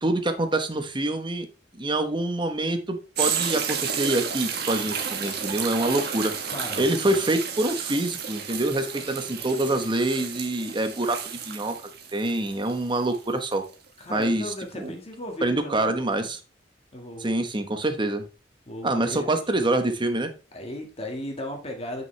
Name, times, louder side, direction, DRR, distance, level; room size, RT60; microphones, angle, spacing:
voice 1, 0.0-1.5 1.8-6.3 6.8-11.2 11.5-11.7 12.1-13.6 14.1-14.9 15.4-16.4 17.2-18.2 18.8-20.3, right 2 dB, 25° right, 7 dB, 1.1 m, -26 dB
sound 1, 3.1-13.7 14.2-14.3, right 7 dB, 60° right, 1.4 m, -32 dB
voice 2, 6.5-7.0 14.0-15.9 16.9-17.4 18.7-19.3 19.6-19.7 20.5-22.0, left 1 dB, 35° left, 2 dB, 1.8 m, -36 dB
8.5 x 6.3 x 3.3 m, 0.32 s
head